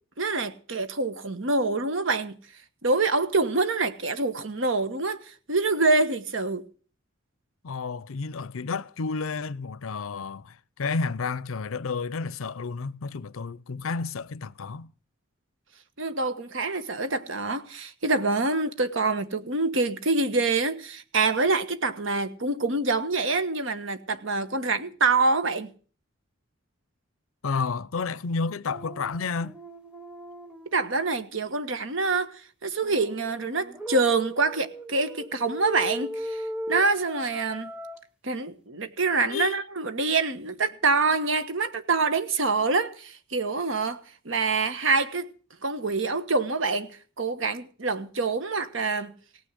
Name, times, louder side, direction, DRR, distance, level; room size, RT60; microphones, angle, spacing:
voice 1, 0.2-2.4 2.8-6.6 16.0-25.7 30.7-32.3 32.6-36.4 36.7-37.7 38.2-45.3 45.6-46.9 47.2-49.1, right 3 dB, 70° right, 1.4 m, -26 dB
voice 2, 7.6-14.9 27.4-29.6 39.3-39.6, left 4 dB, 85° left, 0.6 m, -31 dB
sound 1, 28.7-31.0 32.8-38.0, right 1 dB, 5° right, 0.9 m, -38 dB
18.0 x 6.3 x 9.8 m
head